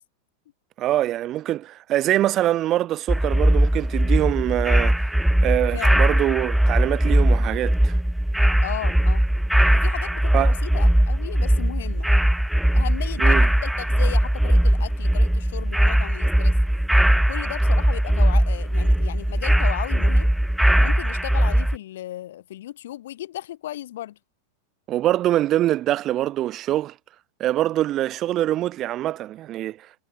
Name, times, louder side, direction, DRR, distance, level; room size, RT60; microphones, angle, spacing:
voice 1, 0.8-5.0 5.4-8.0 10.3-10.6 13.2-13.5 24.9-26.9 27.4-29.8, right 13 dB, 35° right, 1.4 m, -24 dB
sound 1, 3.1-21.8, right 1 dB, ahead, 0.4 m, -19 dB
voice 2, 5.7-6.1 8.6-9.2 9.7-12.1 12.7-16.6 17.3-20.3 20.8-24.2, left 13 dB, 55° left, 5.7 m, -35 dB
figure-of-eight pair, 90°, 0 cm